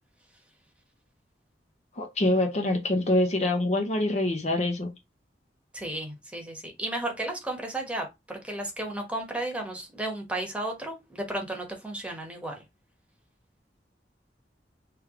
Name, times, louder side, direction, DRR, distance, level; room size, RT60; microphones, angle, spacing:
voice 1, 2.0-4.9, left 1 dB, 40° left, 0.9 m, -25 dB
voice 2, 5.7-12.6, right 1 dB, 5° right, 1.2 m, -34 dB
3.3 x 3.2 x 4.8 m
head